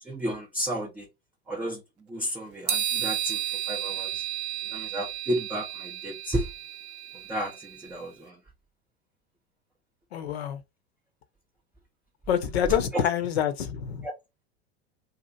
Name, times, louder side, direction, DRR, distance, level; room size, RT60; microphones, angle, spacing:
voice 1, 0.0-1.1 1.5-1.8 2.1-4.3 4.7-6.5 7.3-8.4 12.7-13.0 14.0-14.1, right 1 dB, 5° right, 0.3 m, -32 dB
sound 1, 2.7-8.0, right 11 dB, 80° right, 0.6 m, -33 dB
voice 2, 10.1-10.6 12.3-14.0, left 9 dB, 65° left, 0.7 m, -26 dB
2.7 x 2.4 x 2.3 m
figure-of-eight pair, 85°, 33 cm